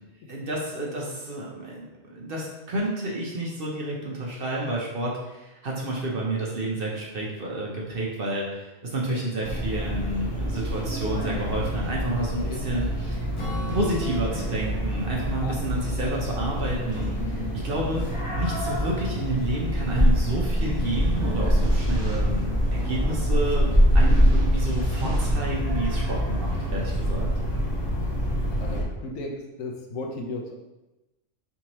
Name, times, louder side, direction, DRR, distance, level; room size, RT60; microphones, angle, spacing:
voice 1, 0.3-13.2 13.7-18.0 18.4-27.3, right 1 dB, 50° right, -3 dB, 0.9 m, -30 dB
sound 1, 9.4-28.8, equal, 15° left, 1.2 m, -25 dB
Acoustic guitar / Strum, 13.4-17.0, left 1 dB, 30° left, 0.6 m, -39 dB
sound 2, 20.6-26.7, equal, 5° right, 1.1 m, -36 dB
voice 2, 28.6-30.7, left 2 dB, 80° left, 1 dB, 1.1 m, -36 dB
4.4 x 3.5 x 2.9 m, 1.0 s
omnidirectional pair, 1.4 m